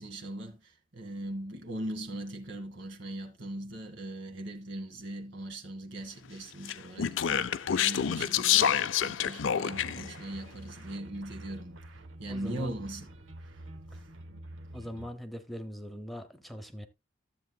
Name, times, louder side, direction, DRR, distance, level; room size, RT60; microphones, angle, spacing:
voice 1, 0.0-11.8 12.2-13.1, right 1 dB, 70° right, 1.8 m, -40 dB
Speech, 6.6-10.1, left 9 dB, 70° left, 0.5 m, -27 dB
sound 1, 9.7-15.1, right 1 dB, 85° right, 1.0 m, -47 dB
voice 2, 12.3-12.7 13.9-14.0 14.7-16.9, equal, ahead, 0.8 m, -41 dB
13.5 x 7.8 x 2.3 m
head